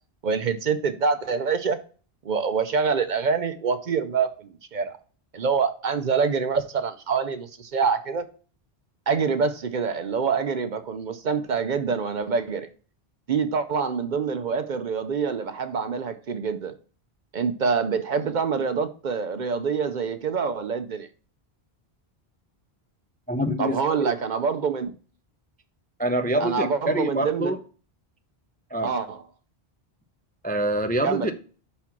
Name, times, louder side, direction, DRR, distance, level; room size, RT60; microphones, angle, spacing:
voice 1, 0.2-1.8 2.2-5.0 5.3-8.3 9.1-12.7 13.3-16.7 17.3-21.1 23.6-24.9 26.4-27.5 28.8-29.2 31.0-31.3, right 5 dB, 55° right, 0.7 m, -26 dB
voice 2, 23.3-24.1 26.0-27.6 28.7-28.9 30.4-31.3, right 1 dB, 15° left, 0.4 m, -25 dB
6.0 x 4.3 x 5.8 m
omnidirectional pair, 1.1 m